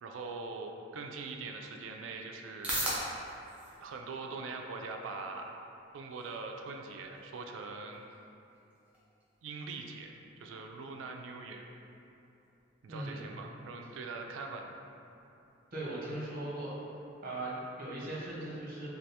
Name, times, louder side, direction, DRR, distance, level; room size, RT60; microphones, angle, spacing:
voice 1, 0.0-2.7 3.8-5.5 5.9-8.0 9.4-10.1 10.4-11.6 12.8-14.7, right 3 dB, 85° right, 3 dB, 0.3 m, -42 dB
sound 1, 2.1-18.1, right 1 dB, 5° right, 0.6 m, -46 dB
voice 2, 12.9-13.3 15.7-16.8 17.2-18.9, right 1 dB, 50° right, -7 dB, 0.8 m, -39 dB
3.3 x 2.3 x 2.7 m, 2.8 s
head